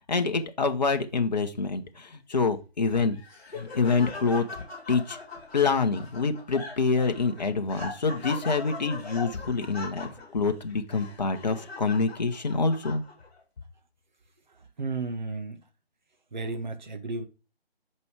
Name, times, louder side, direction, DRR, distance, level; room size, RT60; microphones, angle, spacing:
voice 1, 0.1-3.2 3.5-4.6 4.9-5.2 5.5-13.0, left 4 dB, 40° left, 1.0 m, -26 dB
Laughter, 2.9-13.4, left 3 dB, 15° left, 3.4 m, -41 dB
voice 2, 14.8-15.6 16.3-17.3, right 3 dB, 45° right, 1.2 m, -33 dB
5.5 x 5.4 x 4.6 m
figure-of-eight pair, 155°, 32 cm